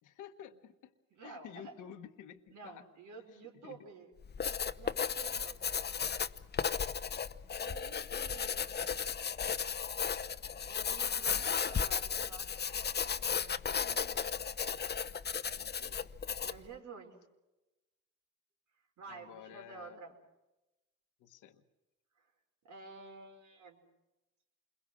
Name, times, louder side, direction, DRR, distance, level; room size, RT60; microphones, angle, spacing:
voice 1, 0.0-0.9 1.2-2.8 3.3-3.9 10.5-10.8 15.6-16.2 19.1-20.0 21.2-21.6, left 9 dB, 90° left, 8 dB, 1.3 m, -52 dB
voice 2, 1.1-1.7 2.5-4.1 4.8-5.6 7.5-8.7 10.6-14.4 16.4-17.2 19.0-20.1 22.2-22.3 22.6-23.8, right 4 dB, 75° right, 2 dB, 5.1 m, -51 dB
Writing, 4.2-16.7, left 7 dB, 35° left, 0.8 m, -35 dB
28.5 x 22.0 x 6.3 m, 1.0 s
cardioid pair, 90°, 30 cm